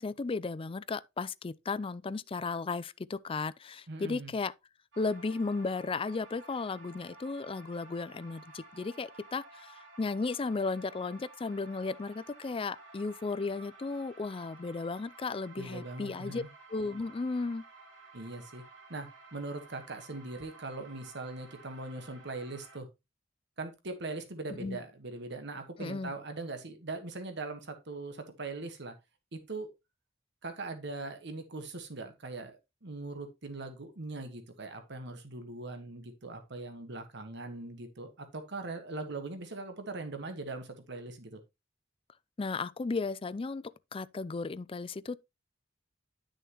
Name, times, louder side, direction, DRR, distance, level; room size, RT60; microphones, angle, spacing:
voice 1, 0.0-4.5 5.0-16.4 16.7-17.6 24.5-24.8 25.8-26.1 42.4-45.2, left 4 dB, 30° left, 0.4 m, -35 dB
voice 2, 3.9-4.3 15.6-16.5 18.1-18.6 18.9-22.9 23.6-29.0 29.3-29.7 30.4-41.4, right 3 dB, 65° right, 1.4 m, -41 dB
sound 1, 4.9-22.8, right 3 dB, 85° right, 2.9 m, -54 dB
10.5 x 6.4 x 3.0 m
head